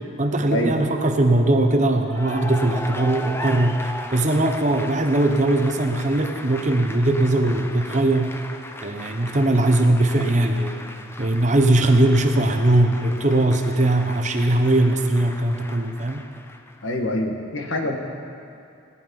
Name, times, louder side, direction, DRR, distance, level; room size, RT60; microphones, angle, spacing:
voice 1, 0.2-8.3 8.8-10.8 11.2-16.2, right 1 dB, 35° right, 5 dB, 0.9 m, -20 dB
Cheering / Applause, 2.0-17.0, left 1 dB, 10° left, 0.6 m, -37 dB
voice 2, 16.8-18.0, left 1 dB, 70° left, 3 dB, 1.5 m, -25 dB
18.0 x 11.0 x 5.4 m, 2.5 s
head